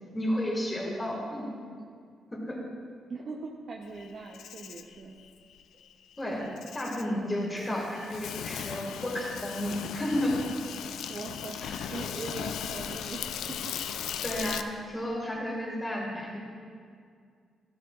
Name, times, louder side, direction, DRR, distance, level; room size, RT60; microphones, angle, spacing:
voice 1, 0.1-1.5 2.4-2.6 6.2-10.4 11.6-11.8 14.2-16.4, left 1 dB, 10° left, -4 dB, 1.9 m, -32 dB
voice 2, 3.1-5.2 7.2-7.5 11.1-11.6 11.9-13.6, right 4 dB, 45° right, 0 dB, 0.7 m, -41 dB
Insect, 4.0-14.6, left 8 dB, 85° left, 0.4 m, -37 dB
13.0 x 12.0 x 2.4 m, 2.2 s
cardioid pair, 115°, 0 cm